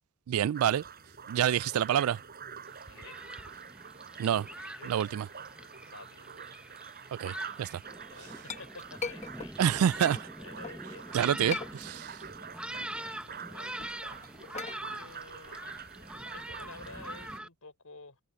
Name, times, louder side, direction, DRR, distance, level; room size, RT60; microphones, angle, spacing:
voice 1, 0.3-0.8 1.3-2.2 4.2-4.5 4.9-5.3 7.2-7.8 9.6-10.2 11.1-12.1, right 9 dB, 80° right, 0.3 m, -27 dB
sound 1, 0.5-17.4, right 6 dB, 45° right, 6.1 m, -47 dB
Thunderstorm, 2.7-17.5, right 1 dB, 5° right, 0.9 m, -43 dB
voice 2, 2.9-3.2 4.5-5.1 5.6-6.3 8.1-9.7 10.3-11.2 12.7-14.1 14.9-15.6 16.3-18.2, left 4 dB, 80° left, 4.5 m, -51 dB
Chink clink, 8.0-10.8 11.3-12.3 12.6-16.7, left 5 dB, 35° left, 1.0 m, -43 dB
head